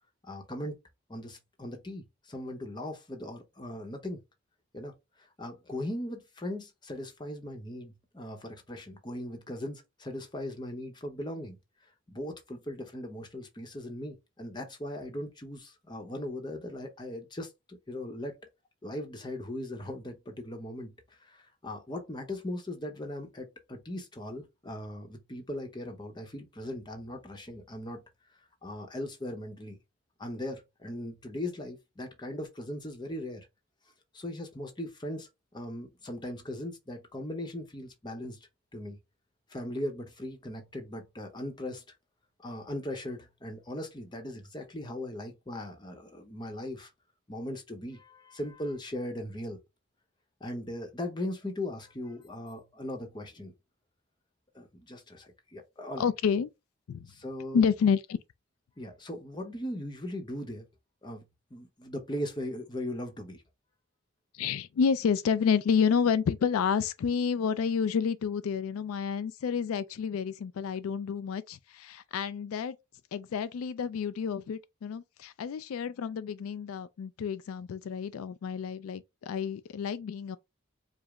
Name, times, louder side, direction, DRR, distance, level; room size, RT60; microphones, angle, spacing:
voice 1, 0.2-0.8 1.1-4.2 4.7-18.3 18.8-28.0 28.6-29.8 30.2-33.5 34.1-39.0 39.5-41.8 42.4-46.9 47.3-49.6 50.4-53.5 54.5-56.1 57.0-57.6 58.8-60.7 61.0-61.2 61.5-63.4, left 1 dB, 20° left, 0.7 m, -39 dB
voice 2, 56.0-56.5 56.9-57.1 57.5-58.2 64.3-72.8 73.1-80.4, left 6 dB, 80° left, 0.3 m, -29 dB
4.9 x 2.0 x 3.5 m
head